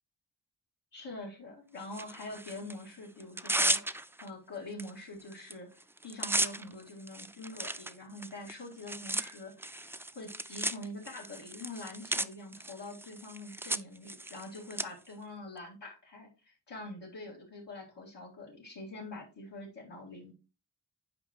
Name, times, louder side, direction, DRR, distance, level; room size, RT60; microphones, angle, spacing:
voice 1, 0.9-3.8 4.2-20.3, left 2 dB, 90° left, -5 dB, 2.0 m, -45 dB
Tearing, 1.9-2.7 3.2-4.3 4.8-4.9 5.2-5.5 5.8-14.8, right 1 dB, 5° right, 0.3 m, -35 dB
8.9 x 5.0 x 2.9 m, 0.32 s
cardioid pair, 50°, 41 cm